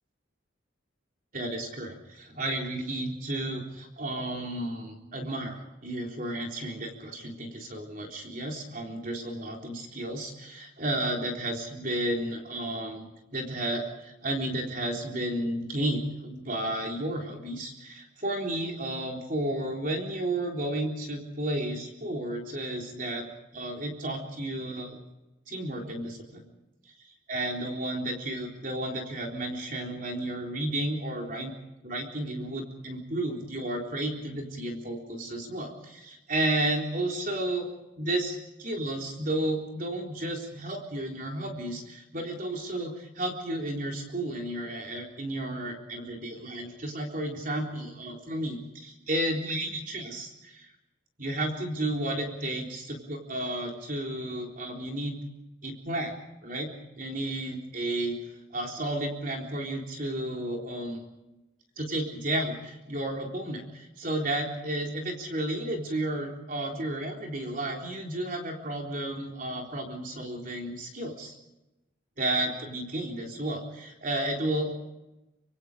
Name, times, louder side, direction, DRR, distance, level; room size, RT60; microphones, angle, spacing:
voice 1, 1.3-23.3 23.5-25.0 25.5-26.4 27.3-31.5 31.8-37.7 38.0-50.7 51.2-55.2 55.6-56.1 56.4-56.7 57.0-58.2 58.5-61.0 61.8-71.3 72.2-74.7, right 1 dB, 45° right, 1 dB, 3.8 m, -32 dB
25.5 x 25.0 x 5.1 m, 0.97 s
head